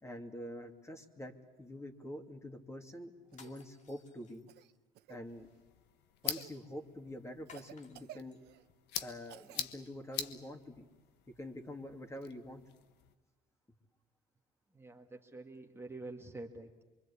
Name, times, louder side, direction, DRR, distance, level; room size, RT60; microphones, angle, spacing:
voice 1, 0.0-4.4 5.1-5.5 6.2-8.4 9.0-10.9 11.4-12.6, left 1 dB, 15° left, 4 dB, 2.7 m, -46 dB
sound 1, 3.3-4.8 7.5-8.4, left 5 dB, 45° left, 2.4 m, -59 dB
Cough, 3.3-3.5 4.5-5.2 6.2-6.6 7.5-8.7 9.3-9.6 10.2-10.3 12.2-12.3, right 14 dB, 75° right, 0.9 m, -54 dB
sound 2, 5.2-13.1, left 10 dB, 85° left, 1.4 m, -45 dB
voice 2, 14.7-16.8, right 2 dB, 15° right, 1 dB, 2.0 m, -47 dB
24.5 x 24.5 x 8.6 m, 1.2 s
cardioid pair, 110°, 17 cm